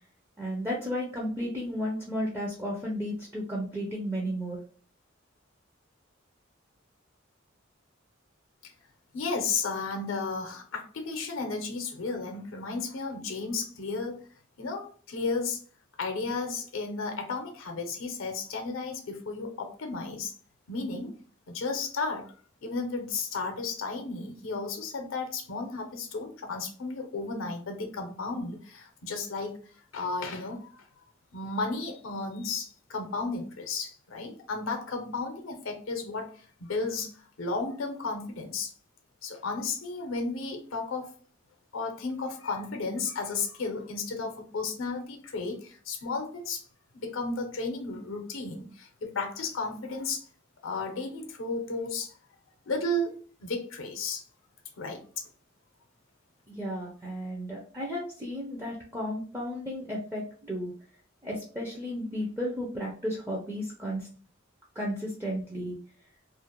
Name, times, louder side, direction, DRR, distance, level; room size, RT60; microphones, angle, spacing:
voice 1, 0.4-4.6 56.5-60.7 61.2-64.1 64.8-65.8, equal, 10° right, -3 dB, 0.4 m, -33 dB
voice 2, 9.1-14.2 14.6-15.6 16.0-20.3 20.7-21.2 21.5-22.3 22.6-29.6 29.9-30.9 31.3-38.7 39.2-41.1 41.7-46.7 47.0-50.3 50.6-52.1 52.7-54.2 54.8-55.2, left 3 dB, 85° left, 4 dB, 0.6 m, -33 dB
2.4 x 2.0 x 2.8 m, 0.42 s
head